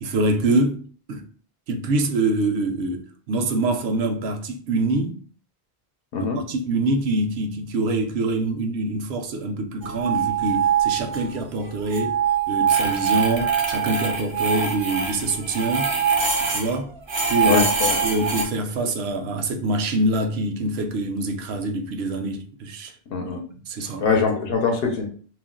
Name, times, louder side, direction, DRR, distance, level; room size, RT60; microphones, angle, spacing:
voice 1, 0.0-0.8 1.1-1.2 1.7-5.2 6.2-12.2 12.5-15.9 16.4-16.9 17.3-17.6 18.0-22.9 23.5-24.1, right 2 dB, 85° right, 0.8 m, -25 dB
sound 1, 9.8-11.4 11.7-16.7 17.1-18.4, right 6 dB, 40° right, 0.4 m, -23 dB
voice 2, 17.4-18.0 23.1-23.4 24.0-25.1, left 4 dB, 70° left, 0.8 m, -23 dB
2.4 x 2.1 x 3.6 m
omnidirectional pair, 1.0 m